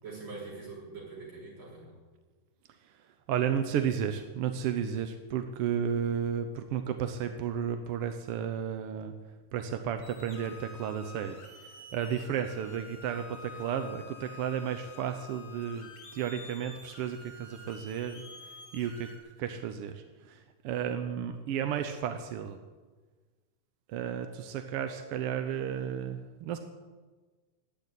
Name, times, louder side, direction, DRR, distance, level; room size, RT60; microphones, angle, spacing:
voice 1, 0.0-1.9 21.5-21.7, right 3 dB, 40° right, -5 dB, 7.0 m, -44 dB
voice 2, 3.3-9.1 9.5-11.4 11.9-18.2 18.7-19.1 19.4-22.6 23.9-26.6, right 8 dB, 70° right, 7 dB, 1.5 m, -33 dB
sound 1, 10.0-19.2, left 4 dB, 60° left, 3.5 m, -49 dB
12.0 x 9.2 x 9.8 m, 1.3 s
omnidirectional pair, 3.3 m